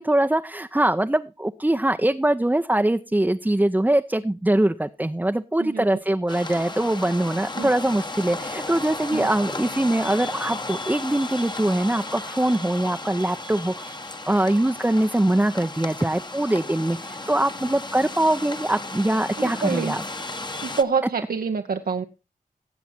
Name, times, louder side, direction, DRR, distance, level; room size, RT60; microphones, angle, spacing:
voice 1, 0.0-20.0, right 1 dB, 10° right, 7 dB, 0.6 m, -23 dB
sound 1, 6.3-20.8, left 2 dB, 30° left, 1.1 m, -34 dB
voice 2, 19.4-19.9 20.6-22.0, right 5 dB, 75° right, 6 dB, 0.9 m, -26 dB
17.0 x 7.1 x 4.3 m, 0.30 s
cardioid pair, 40°, 15 cm